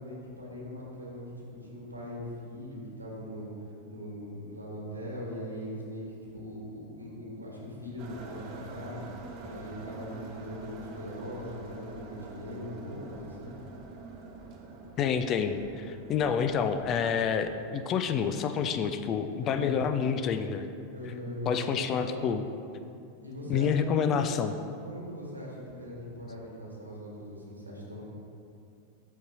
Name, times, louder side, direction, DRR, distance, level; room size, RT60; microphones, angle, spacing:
voice 1, 0.0-3.5 3.9-6.1 6.3-9.0 9.4-13.5 19.4-19.8 20.9-22.2 23.2-24.2 24.8-28.0, equal, 85° right, -4 dB, 1.5 m, -40 dB
sound 1, 8.0-17.5, right 3 dB, 40° right, 0.8 m, -46 dB
voice 2, 15.0-20.6 21.5-22.4 23.5-24.5, left 7 dB, 30° left, 9 dB, 0.3 m, -28 dB
11.5 x 4.0 x 2.8 m, 2.5 s
figure-of-eight pair, 90°, 0 cm